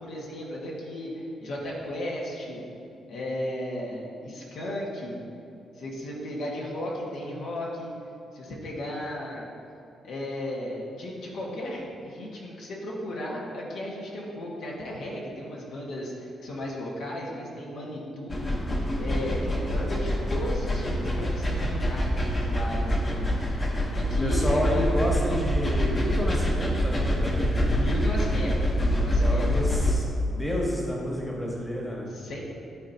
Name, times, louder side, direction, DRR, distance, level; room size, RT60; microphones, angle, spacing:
voice 1, 0.0-2.6 3.1-5.2 5.7-7.9 8.3-9.5 10.0-23.6 23.9-25.0 27.7-29.5 32.1-32.4, left 1 dB, 75° left, -3 dB, 1.5 m, -35 dB
sound 1, 18.3-29.9, equal, 25° left, 0.9 m, -26 dB
voice 2, 24.2-27.7 29.2-32.1, equal, 10° left, -3 dB, 1.2 m, -30 dB
12.5 x 4.4 x 2.8 m, 2.8 s
cardioid pair, 120°, 0 cm